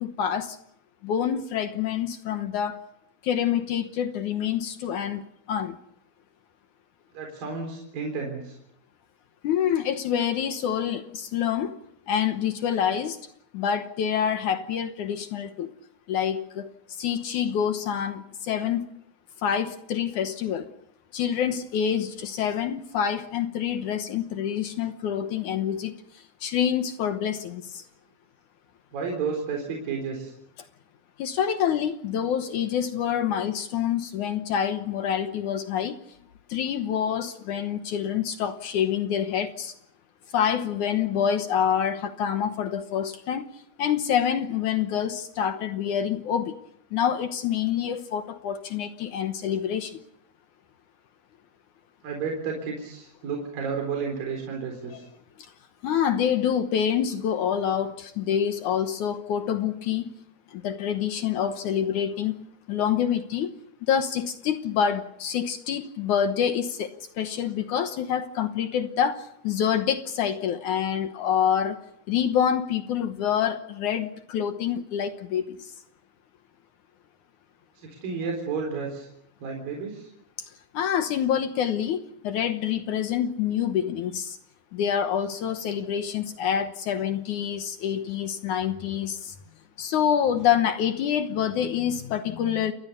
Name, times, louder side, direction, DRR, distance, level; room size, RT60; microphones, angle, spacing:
voice 1, 0.0-0.6 1.0-2.8 3.2-5.8 9.4-11.8 12.1-13.2 13.5-15.7 16.1-18.9 19.4-20.7 21.1-27.8 31.2-36.0 36.5-39.7 40.3-43.5 43.8-46.6 46.9-50.0 54.9-55.0 55.4-55.5 55.8-60.1 60.5-62.3 62.7-63.5 63.8-71.8 72.1-75.7 80.7-84.4 84.7-89.4 89.8-92.7, left 8 dB, 65° left, 2.2 m, -27 dB
voice 2, 7.1-8.6 28.9-30.3 52.0-55.0 77.8-79.1 79.4-80.1, right 5 dB, 65° right, 5.6 m, -32 dB
29.0 x 20.0 x 6.8 m
omnidirectional pair, 4.3 m